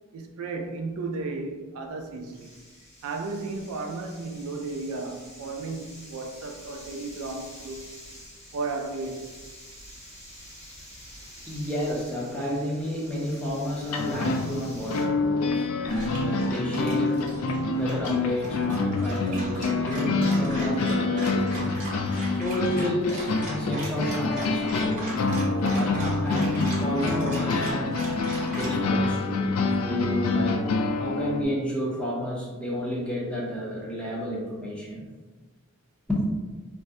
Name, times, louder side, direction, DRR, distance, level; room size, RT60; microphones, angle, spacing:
voice 1, 0.1-2.5 3.0-7.9 8.5-9.3, right 3 dB, 75° right, 0.4 m, -34 dB
sound 1, 1.8-15.0, equal, 30° left, 1.0 m, -48 dB
voice 2, 11.5-22.0 22.4-25.0 25.4-28.0 28.4-29.5 29.8-35.0 36.1-36.2, equal, 5° left, 0.5 m, -31 dB
sound 2, 13.8-31.4, left 3 dB, 80° left, 0.3 m, -27 dB
Dog, 15.9-28.8, right 1 dB, 35° right, 0.8 m, -37 dB
2.5 x 2.1 x 3.5 m
head